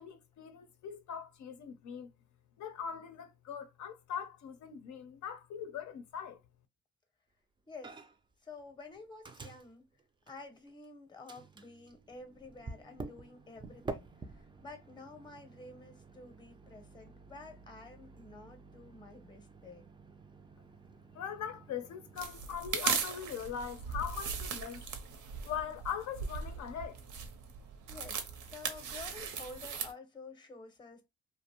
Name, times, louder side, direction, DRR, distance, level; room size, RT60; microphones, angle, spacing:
voice 1, 0.0-2.1 2.6-6.4 21.1-24.8 25.4-27.0, left 8 dB, 70° left, 0.5 m, -41 dB
voice 2, 7.7-8.0 8.4-9.9 10.3-19.9 27.9-31.1, left 3 dB, 15° left, 0.7 m, -50 dB
Microwave oven, 7.8-8.3 8.6-10.9 11.3-22.3, right 3 dB, 15° right, 0.3 m, -49 dB
sound 1, 22.2-29.9, right 6 dB, 75° right, 0.6 m, -38 dB
2.5 x 2.0 x 2.8 m
cardioid pair, 90°, 30 cm